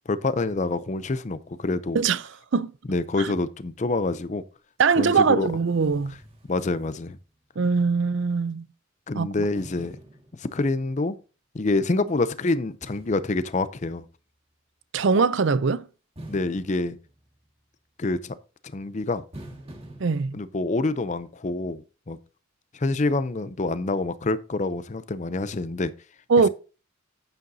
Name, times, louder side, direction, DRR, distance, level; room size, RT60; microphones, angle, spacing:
voice 1, 0.1-2.0 2.9-4.4 5.0-5.5 6.5-7.2 9.1-10.0 10.4-11.2 11.5-14.1 16.3-17.0 18.0-18.4 18.7-19.2 20.3-22.2 22.7-25.9, left 2 dB, 35° left, 0.5 m, -26 dB
voice 2, 4.8-6.1 7.6-8.6 9.2-9.3 14.9-15.9 20.0-20.3 26.3-26.5, right 5 dB, 60° right, 0.5 m, -21 dB
sound 1, 5.0-5.1 5.4-7.4 7.8-7.9 9.5-10.9 12.8-14.2 16.2-17.7 19.3-20.0, right 1 dB, 25° right, 1.8 m, -47 dB
9.4 x 9.2 x 2.7 m
head